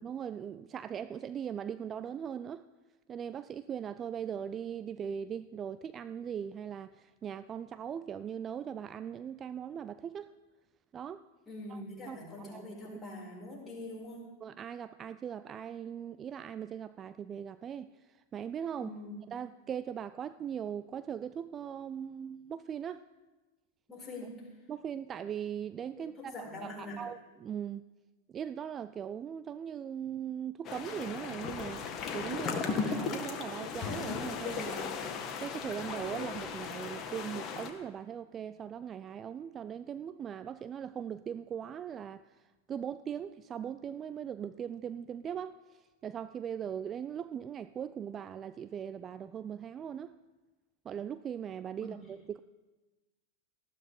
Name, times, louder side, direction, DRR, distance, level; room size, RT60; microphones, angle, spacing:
voice 1, 0.0-2.6 3.1-10.3 10.9-11.2 11.7-12.6 14.4-18.9 19.3-23.0 24.7-26.7 27.0-27.8 28.3-35.0 35.4-50.1 50.9-52.4, right 8 dB, 25° right, 0.4 m, -40 dB
voice 2, 11.4-14.3 18.8-19.1 23.9-24.5 26.0-27.0 51.8-51.9, left 2 dB, 15° left, 6.7 m, -44 dB
sound 1, 30.6-37.7, left 6 dB, 30° left, 1.8 m, -36 dB
19.0 x 14.5 x 3.9 m
figure-of-eight pair, 90°, 0 cm